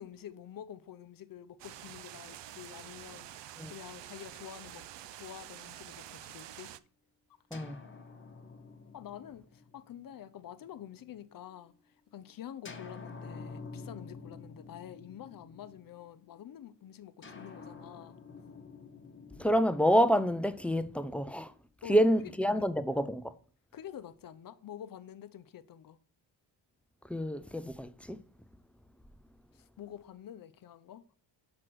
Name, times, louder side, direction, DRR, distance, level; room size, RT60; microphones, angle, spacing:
voice 1, 0.0-3.3 3.7-4.9 5.1-6.7 8.9-18.2 21.8-22.3 23.7-26.0 29.5-31.0, left 10 dB, 50° left, 0.7 m, -48 dB
sound 1, 1.6-6.8, right 12 dB, 70° right, 0.5 m, -48 dB
sound 2, 7.5-11.3 12.6-16.2 17.2-21.4, left 4 dB, 25° left, 0.9 m, -49 dB
voice 2, 19.4-21.5 21.8-23.3 27.1-28.2, equal, 5° left, 0.3 m, -28 dB
6.1 x 4.7 x 6.0 m
cardioid pair, 105°, 46 cm